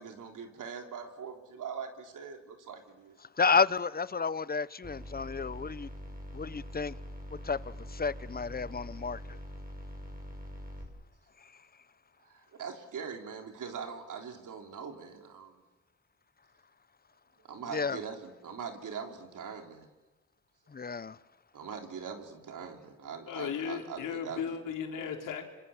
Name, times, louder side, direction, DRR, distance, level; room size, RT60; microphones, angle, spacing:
voice 1, 0.0-3.2 12.2-15.6 17.4-19.9 21.5-24.4 25.0-25.1, right 6 dB, 75° right, 3.6 m, -42 dB
voice 2, 3.4-5.9 6.3-7.0 7.4-9.4 11.4-11.5 17.7-18.0 20.7-21.2, left 5 dB, 30° left, 0.8 m, -31 dB
sound 1, 4.8-10.8, equal, 30° right, 6.6 m, -44 dB
voice 3, 23.3-25.4, left 7 dB, 85° left, 3.8 m, -36 dB
27.5 x 25.0 x 7.3 m
cardioid pair, 65°, 31 cm